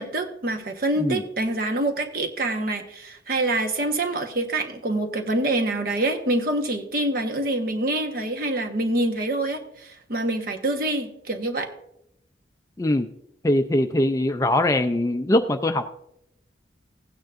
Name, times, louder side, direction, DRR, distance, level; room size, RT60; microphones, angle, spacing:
voice 1, 0.0-11.7, right 2 dB, 50° right, 4 dB, 1.2 m, -26 dB
voice 2, 13.4-16.0, left 1 dB, 20° left, 8 dB, 0.4 m, -22 dB
16.0 x 9.1 x 2.5 m, 0.76 s
head